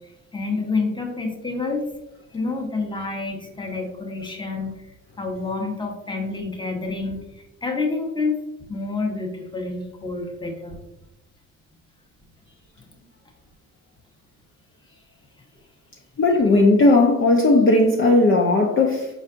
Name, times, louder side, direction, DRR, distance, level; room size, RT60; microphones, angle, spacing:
voice 1, 0.0-1.9 2.3-4.8 5.2-7.2 7.6-8.4 8.7-10.8, left 3 dB, 15° left, 2 dB, 1.0 m, -28 dB
voice 2, 16.2-19.1, left 2 dB, 45° left, 1 dB, 0.7 m, -16 dB
4.6 x 4.1 x 2.5 m, 0.90 s
cardioid pair, 90°, 30 cm